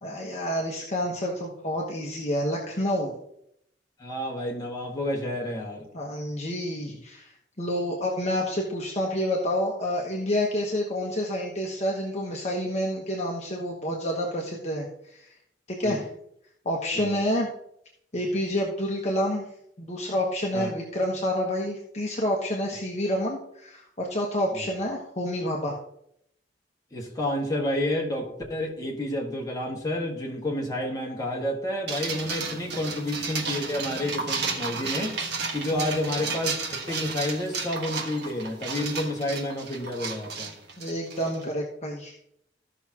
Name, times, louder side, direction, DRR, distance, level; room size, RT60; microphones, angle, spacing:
voice 1, 0.0-3.1 5.9-15.3 15.7-16.0 16.6-17.5 18.1-19.4 19.8-25.8 35.7-35.9 40.8-42.2, equal, 40° left, -1 dB, 1.2 m, -28 dB
voice 2, 4.0-5.9 15.8-16.0 16.9-17.2 20.5-20.7 24.5-24.7 26.9-35.2 35.5-40.5, left 1 dB, 20° left, -2 dB, 1.7 m, -30 dB
sound 1, 31.9-41.4, right 4 dB, 60° right, 1.5 m, -33 dB
15.0 x 6.0 x 2.9 m, 0.74 s
head